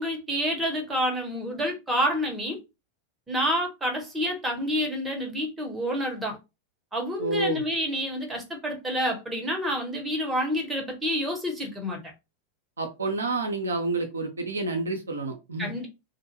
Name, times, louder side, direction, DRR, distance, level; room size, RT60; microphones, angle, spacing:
voice 1, 0.0-2.6 3.3-6.4 6.9-12.0 15.6-15.9, equal, 10° right, 0.9 m, -28 dB
voice 2, 7.2-7.6 12.8-15.7, right 2 dB, 75° right, 0.5 m, -29 dB
2.4 x 2.1 x 2.9 m
figure-of-eight pair, 90°, 0 cm